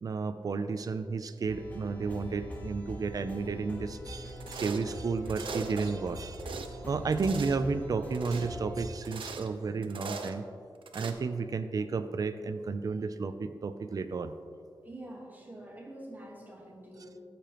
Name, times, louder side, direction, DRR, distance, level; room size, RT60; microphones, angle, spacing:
voice 1, 0.0-6.4 6.7-10.4 10.9-14.3, right 4 dB, 45° right, 10 dB, 0.4 m, -32 dB
sound 1, 1.5-8.8, equal, 20° left, 1.5 m, -43 dB
sound 2, 4.4-4.9 5.3-5.9 6.2-6.7 7.1-7.6 8.1-8.5 9.0-9.5 9.8-10.4 10.9-11.1, right 4 dB, 85° right, 0.6 m, -40 dB
voice 2, 14.8-17.2, right 1 dB, 20° right, -1 dB, 1.4 m, -46 dB
14.0 x 6.8 x 3.0 m, 2.2 s
wide cardioid pair, 140°, 9 cm